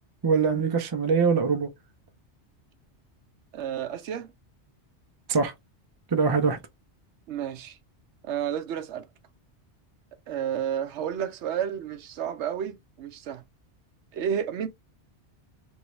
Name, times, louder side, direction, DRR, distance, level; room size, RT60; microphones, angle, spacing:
voice 1, 0.2-1.7 5.3-5.5 6.1-6.6, right 5 dB, 35° right, 0.4 m, -23 dB
voice 2, 3.5-4.3 7.3-7.8 8.2-9.1 10.3-13.4 14.1-14.7, right 9 dB, 80° right, 0.9 m, -31 dB
3.1 x 2.7 x 3.0 m
omnidirectional pair, 1.2 m